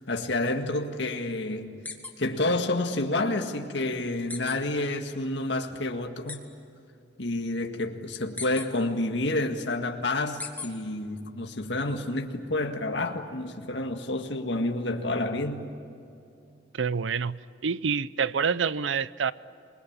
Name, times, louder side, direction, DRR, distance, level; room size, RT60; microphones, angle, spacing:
voice 1, 0.0-1.7 2.2-6.4 7.2-15.7, left 2 dB, 70° left, 1.9 m, -29 dB
sound 1, 1.8-2.1 2.5-2.6 4.3-4.6 6.3-6.4 8.4-8.7 10.4-10.7, left 4 dB, 10° left, 2.1 m, -35 dB
voice 2, 16.7-19.3, right 6 dB, 90° right, 0.6 m, -27 dB
27.0 x 21.0 x 8.8 m
head